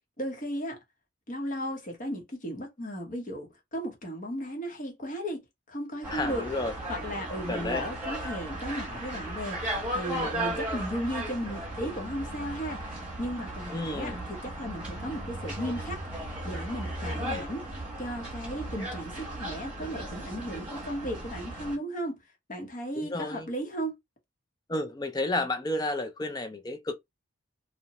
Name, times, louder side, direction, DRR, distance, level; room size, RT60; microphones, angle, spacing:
voice 1, 0.2-0.8 1.3-5.4 5.7-6.5 6.9-17.6 18.0-22.2 22.5-24.0, equal, 40° left, 0.7 m, -35 dB
sound 1, 6.0-21.8, right 1 dB, 5° right, 1.2 m, -36 dB
voice 2, 6.1-6.7 7.5-7.8 13.7-14.2 23.0-23.5 24.7-26.9, left 2 dB, 20° left, 0.3 m, -31 dB
sound 2, 11.3-21.8, right 1 dB, 45° right, 0.6 m, -44 dB
2.8 x 2.0 x 2.9 m
head